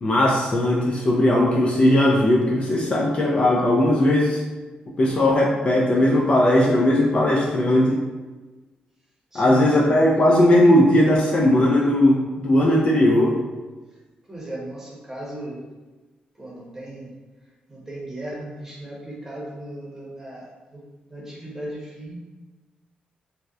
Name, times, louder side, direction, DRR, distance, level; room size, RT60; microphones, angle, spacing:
voice 1, 0.0-4.4 5.0-8.0 9.3-13.4, left 1 dB, 40° left, -3 dB, 0.4 m, -18 dB
voice 2, 9.3-9.9 13.9-14.0 14.3-15.6 16.4-17.1 17.7-20.8 21.1-22.4, right 1 dB, 15° right, -5 dB, 0.8 m, -37 dB
2.6 x 2.1 x 2.3 m, 1.2 s
cardioid pair, 95°, 3 cm